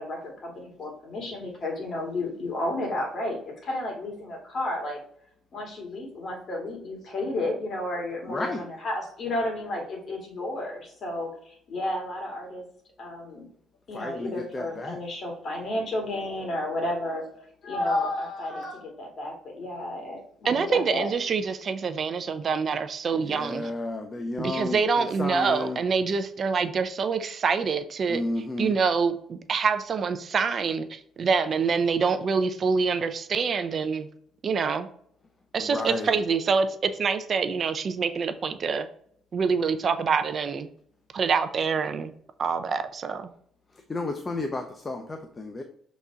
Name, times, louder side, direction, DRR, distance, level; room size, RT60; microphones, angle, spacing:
voice 1, 0.0-5.0 5.5-12.6 13.0-13.5 13.9-21.1, left 1 dB, 45° left, 0 dB, 2.7 m, -32 dB
voice 2, 8.3-8.6 13.9-15.0 23.2-25.8 28.1-28.8 35.6-36.2 43.9-45.6, left 2 dB, 20° left, 5 dB, 0.7 m, -32 dB
voice 3, 20.4-23.7 24.4-34.1 34.4-34.9 35.5-38.9 39.3-40.7 41.1-42.1 42.4-43.3, right 5 dB, 40° right, 9 dB, 0.5 m, -26 dB
6.9 x 4.1 x 3.6 m, 0.65 s
cardioid pair, 120°, 0 cm